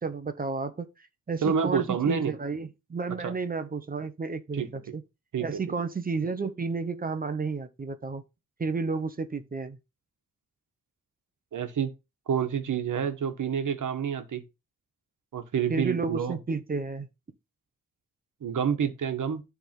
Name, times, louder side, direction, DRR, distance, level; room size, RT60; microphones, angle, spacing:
voice 1, 0.0-5.0 5.4-8.2 8.6-9.8 15.7-17.1, right 4 dB, 30° right, 0.9 m, -32 dB
voice 2, 1.4-2.3 3.2-3.3 4.5-4.7 5.3-5.5 11.5-11.9 12.3-14.4 15.3-16.4 18.4-19.4, right 7 dB, 75° right, 1.3 m, -28 dB
10.5 x 3.6 x 5.9 m
wide cardioid pair, 175°, 31 cm